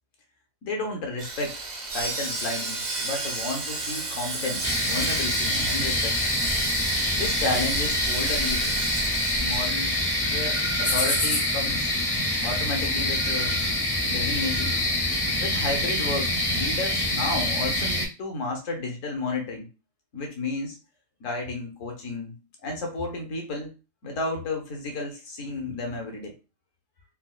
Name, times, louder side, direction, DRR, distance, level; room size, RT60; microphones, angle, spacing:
voice 1, 0.6-1.5 1.9-6.1 7.1-8.8 9.3-9.9 10.2-11.9 12.4-13.6 14.1-14.7 15.4-19.7 20.1-20.8 21.2-22.4 22.6-23.7 24.0-26.3, left 2 dB, 60° left, 2 dB, 1.2 m, -32 dB
Sawing, 1.2-15.4 15.7-15.9 16.3-16.5, right 3 dB, 50° right, 0.5 m, -33 dB
sound 1, 4.6-18.1, left 1 dB, 35° left, 0.4 m, -26 dB
4.2 x 2.2 x 2.3 m, 0.31 s
omnidirectional pair, 1.5 m